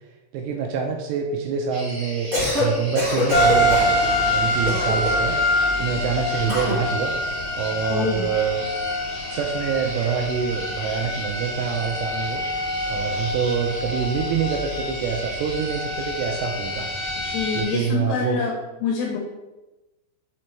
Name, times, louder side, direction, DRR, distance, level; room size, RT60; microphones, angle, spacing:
voice 1, 0.3-2.3 2.6-3.9 4.2-7.1 7.6-8.7 9.3-12.4 12.9-16.9 17.5-18.4, right 7 dB, 85° right, 1 dB, 2.5 m, -26 dB
sound 1, 1.7-17.9, equal, 55° right, 1.5 m, -38 dB
Cough, 2.1-2.7 2.9-3.9 4.6-5.3 6.5-6.8, left 2 dB, 30° right, 1.7 m, -24 dB
sound 2, 3.3-17.6, left 1 dB, 40° left, 2.7 m, -25 dB
voice 2, 7.9-8.3 17.2-18.5 18.8-19.2, left 6 dB, 75° left, 0 dB, 2.6 m, -26 dB
6.5 x 4.3 x 4.3 m, 1.0 s
omnidirectional pair, 5.5 m